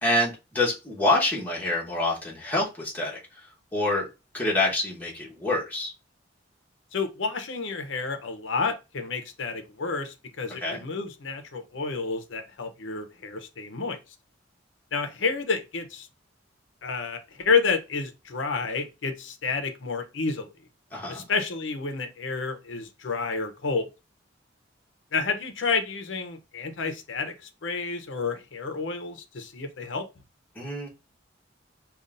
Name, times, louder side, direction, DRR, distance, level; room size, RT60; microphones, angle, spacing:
voice 1, 0.0-3.2 3.7-4.1 4.3-5.9 10.6-10.8 20.9-21.2 30.5-30.9, left 2 dB, 10° left, 1.1 m, -26 dB
voice 2, 6.9-14.0 14.9-16.1 16.8-20.5 21.1-23.9 25.1-30.1, left 4 dB, 80° left, 0.7 m, -30 dB
5.2 x 2.4 x 2.5 m
head